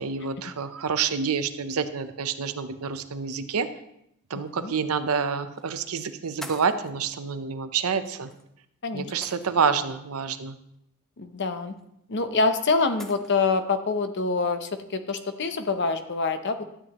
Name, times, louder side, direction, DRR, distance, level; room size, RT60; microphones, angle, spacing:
voice 1, 0.0-3.7 4.3-8.3 8.9-10.6, right 6 dB, 80° right, 10 dB, 0.6 m, -28 dB
sound 1, 4.5-4.6 5.6-5.8 6.4-6.9 8.3-8.4 9.2-9.8 11.8-11.9 13.0-13.3, equal, ahead, 0.4 m, -43 dB
voice 2, 11.2-11.7 12.1-16.8, left 4 dB, 50° left, 9 dB, 0.7 m, -26 dB
12.5 x 8.6 x 3.0 m, 0.78 s
head